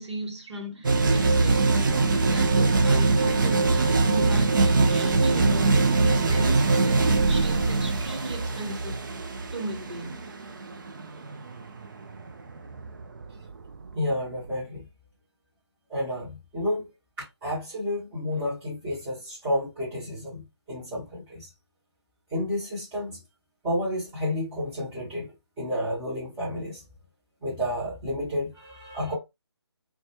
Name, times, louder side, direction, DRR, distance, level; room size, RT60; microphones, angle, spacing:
voice 1, 0.0-1.8 2.2-9.0 9.5-10.2, right 2 dB, 75° right, 1.0 m, -36 dB
sound 1, 0.8-14.6, right 3 dB, 45° right, 0.5 m, -23 dB
voice 2, 13.9-14.8 15.9-16.9 17.4-20.4 20.7-21.5 22.3-23.2 23.6-25.3 25.6-26.8 27.4-29.1, left 1 dB, 10° right, 0.9 m, -30 dB
2.2 x 2.1 x 2.9 m
figure-of-eight pair, 150°, 15 cm